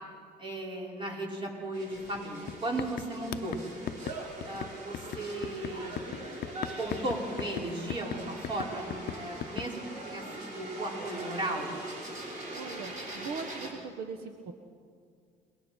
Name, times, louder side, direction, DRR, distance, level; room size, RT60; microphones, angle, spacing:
voice 1, 0.4-3.6 4.4-5.9 6.8-11.7, right 1 dB, 30° right, -3 dB, 5.8 m, -36 dB
sound 1, 1.7-13.7, right 2 dB, 50° right, 5.0 m, -42 dB
sound 2, 2.0-2.2 2.5-9.7, left 12 dB, 65° left, 0.6 m, -38 dB
voice 2, 12.5-14.5, right 4 dB, 70° right, 5 dB, 1.5 m, -40 dB
28.5 x 21.5 x 4.6 m, 2.2 s
cardioid pair, 110°, 17 cm